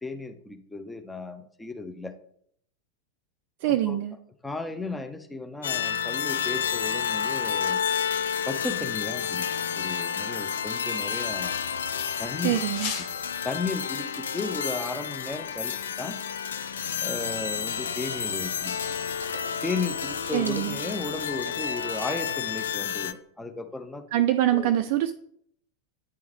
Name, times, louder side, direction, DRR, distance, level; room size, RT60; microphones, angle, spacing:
voice 1, 0.0-2.1 3.7-4.0 4.4-7.8 8.5-11.5 12.2-12.6 13.4-16.2 17.0-18.7 19.6-24.2 24.5-24.8, left 3 dB, 5° left, 7 dB, 0.6 m, -35 dB
voice 2, 3.6-4.1 12.4-12.9 20.3-20.8 24.1-25.1, right 13 dB, 45° right, 7 dB, 0.3 m, -24 dB
sound 1, 5.6-23.1, left 7 dB, 65° left, 0.4 m, -30 dB
sound 2, 10.5-23.0, left 6 dB, 50° left, 1.0 m, -46 dB
sound 3, 17.1-22.4, equal, 85° right, 0.6 m, -43 dB
9.6 x 3.5 x 3.2 m, 0.66 s
figure-of-eight pair, 90°, 0 cm